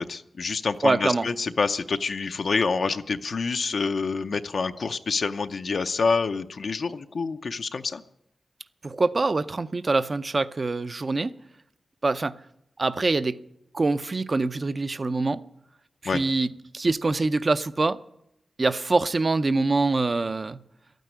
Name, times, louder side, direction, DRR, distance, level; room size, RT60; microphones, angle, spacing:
voice 1, 0.0-8.0 16.0-16.2, left 4 dB, 60° left, 0.6 m, -27 dB
voice 2, 0.8-1.3 8.8-11.3 12.0-12.4 12.8-13.4 13.7-15.4 16.0-16.5 16.7-18.0 18.6-20.6, right 3 dB, 35° right, 0.6 m, -24 dB
13.0 x 9.2 x 9.7 m
wide cardioid pair, 125°, 0 cm